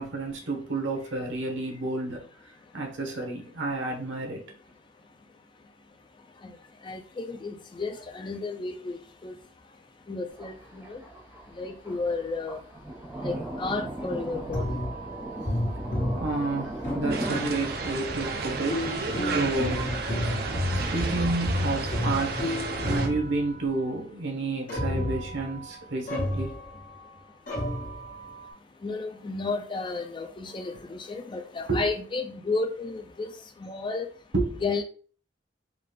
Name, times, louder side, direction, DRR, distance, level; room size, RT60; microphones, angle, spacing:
voice 1, 0.0-2.3 2.7-4.4 16.1-19.8 20.4-20.5 20.9-22.4 22.8-26.5 31.7-31.9 34.3-34.6, right 3 dB, 85° right, 1 dB, 1.0 m, -30 dB
voice 2, 6.8-9.4 10.1-11.0 11.6-12.6 13.2-14.8 18.2-18.3 28.8-33.3 33.6-34.1 34.6-34.8, left 3 dB, 25° left, 5 dB, 0.3 m, -32 dB
Thunder, 10.3-21.6, right 1 dB, 15° right, 0.9 m, -39 dB
sound 1, 14.5-18.0 18.7-23.8 24.7-27.2 27.5-28.5, left 1 dB, 50° left, 1.4 m, -31 dB
sound 2, 17.1-23.1, right 4 dB, 55° right, 0.5 m, -32 dB
3.7 x 2.3 x 3.2 m, 0.43 s
head